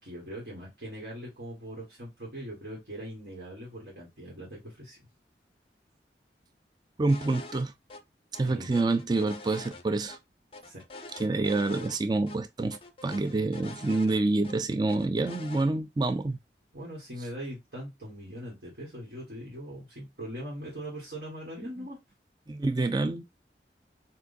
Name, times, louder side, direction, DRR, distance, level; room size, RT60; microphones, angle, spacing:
voice 1, 0.0-5.0 8.5-8.7 10.6-10.8 16.7-22.0, equal, 65° right, 1.7 m, -41 dB
voice 2, 7.0-7.7 8.4-10.2 11.2-16.4 22.5-23.2, right 2 dB, 25° right, 0.4 m, -27 dB
sound 1, 7.1-7.6 7.9-8.0 8.3-10.2 10.5-12.0 12.3-12.4 12.7-14.6 14.9-15.6, left 3 dB, 30° left, 0.5 m, -45 dB
6.0 x 2.7 x 2.7 m
head